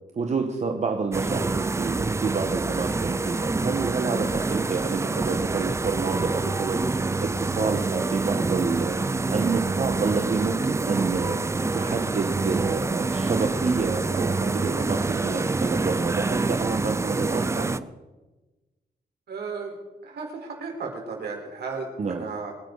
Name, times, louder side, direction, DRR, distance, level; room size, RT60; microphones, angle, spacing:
voice 1, 0.1-17.9 22.0-22.3, right 4 dB, 40° right, 4 dB, 1.3 m, -29 dB
sound 1, 1.1-17.8, right 3 dB, 15° right, 0.5 m, -26 dB
voice 2, 19.3-19.7 20.0-22.5, right 4 dB, 75° right, 1 dB, 4.5 m, -34 dB
26.0 x 10.0 x 4.1 m, 1.1 s
cardioid pair, 120°, 17 cm